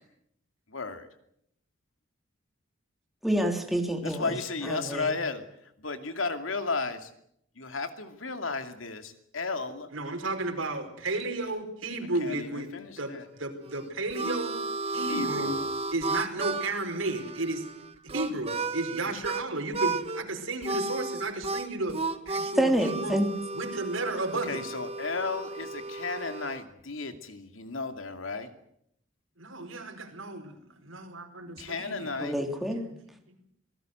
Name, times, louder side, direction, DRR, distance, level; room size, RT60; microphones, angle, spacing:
voice 1, 0.7-1.1 4.0-7.1 7.6-9.9 12.2-13.2 15.1-15.7 24.4-28.5 31.6-32.3, left 4 dB, 85° left, 7 dB, 2.6 m, -34 dB
voice 2, 3.2-4.3 4.6-5.1 22.6-23.3 32.2-32.8, right 1 dB, ahead, 3 dB, 3.3 m, -27 dB
voice 3, 9.9-12.7 13.0-14.5 14.8-15.6 15.9-17.6 18.1-22.0 22.2-23.2 23.5-24.6 29.4-32.1 32.7-32.9 33.3-33.4, right 2 dB, 85° right, 3 dB, 4.9 m, -33 dB
Harmonica, 13.6-19.4 19.7-20.2 20.6-26.6, right 3 dB, 30° right, 1.3 m, -34 dB
26.5 x 19.0 x 8.0 m, 0.74 s
head